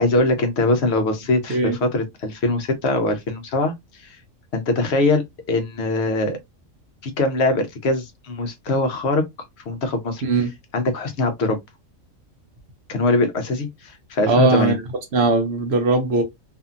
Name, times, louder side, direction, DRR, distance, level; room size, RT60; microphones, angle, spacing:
voice 1, 0.0-4.2 4.5-6.4 7.0-9.2 9.7-10.2 10.7-11.6 12.9-14.8, left 2 dB, 60° left, 0.9 m, -22 dB
voice 2, 14.3-14.8 15.1-16.2, right 3 dB, 60° right, 0.8 m, -19 dB
2.7 x 2.5 x 2.4 m
omnidirectional pair, 1.4 m